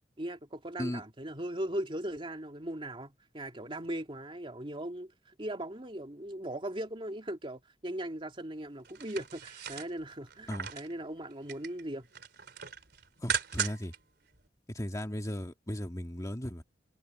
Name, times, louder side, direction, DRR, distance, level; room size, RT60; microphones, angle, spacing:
voice 1, 0.2-12.1, right 1 dB, 30° right, 2.5 m, -39 dB
sound 1, 8.8-10.9 11.3-11.8 12.1-14.0 14.3-14.4, right 6 dB, 65° right, 3.8 m, -37 dB
voice 2, 13.2-13.9 14.7-16.6, equal, 20° left, 2.0 m, -36 dB
head